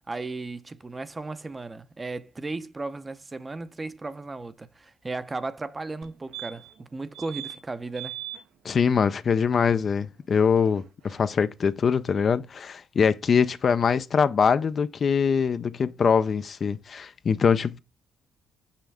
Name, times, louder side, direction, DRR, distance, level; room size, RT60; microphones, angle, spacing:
voice 1, 0.1-8.2, right 3 dB, 25° right, 0.6 m, -35 dB
sound 1, 6.0-6.1 6.3-6.8 7.1-7.6 7.9-8.4 10.8-10.9 11.1-11.2, right 13 dB, 70° right, 0.8 m, -38 dB
voice 2, 8.6-17.8, left 6 dB, 50° left, 0.4 m, -23 dB
6.0 x 5.7 x 3.4 m
cardioid pair, 90°, 0 cm